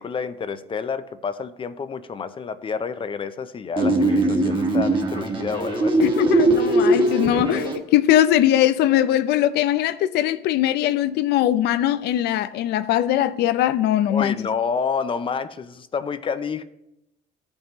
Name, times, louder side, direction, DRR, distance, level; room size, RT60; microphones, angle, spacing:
voice 1, 0.0-6.0 14.1-16.6, left 5 dB, 30° left, 0.5 m, -29 dB
sound 1, 3.8-7.8, right 2 dB, 30° right, 1.3 m, -20 dB
voice 2, 6.0-14.4, left 12 dB, 80° left, 0.5 m, -20 dB
14.5 x 5.4 x 3.0 m
cardioid pair, 110°, 17 cm